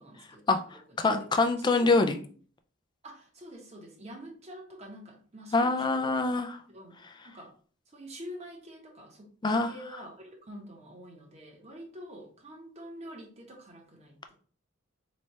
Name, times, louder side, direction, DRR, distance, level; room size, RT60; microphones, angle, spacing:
voice 1, 0.0-0.4 0.7-1.0 1.4-2.2 3.0-6.2 6.7-6.9 7.2-7.5 7.9-14.3, equal, 35° right, 0 dB, 1.0 m, -47 dB
voice 2, 1.0-2.2 5.5-6.6 9.4-9.7, left 3 dB, 20° left, 7 dB, 0.3 m, -24 dB
3.1 x 2.3 x 4.1 m, 0.43 s
head